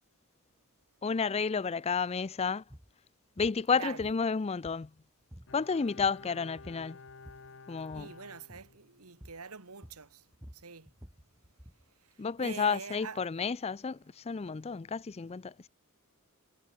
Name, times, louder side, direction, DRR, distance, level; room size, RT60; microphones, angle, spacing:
voice 1, 1.0-2.6 3.4-4.9 5.5-7.0 7.7-8.1 12.2-15.7, left 5 dB, 25° left, 0.4 m, -31 dB
sound 1, 2.6-2.9 3.4-3.6 4.0-5.0 5.3-5.6 5.8-6.3 6.6-7.5 7.8-8.1 8.5-8.7 9.2-9.5 9.8-11.9, equal, 10° right, 2.5 m, -51 dB
voice 2, 3.7-4.1 6.2-6.4 7.5-10.9 11.9-13.5, right 5 dB, 80° right, 2.0 m, -46 dB
Bowed string instrument, 5.5-9.2 9.5-9.6, left 4 dB, 60° left, 1.0 m, -52 dB
head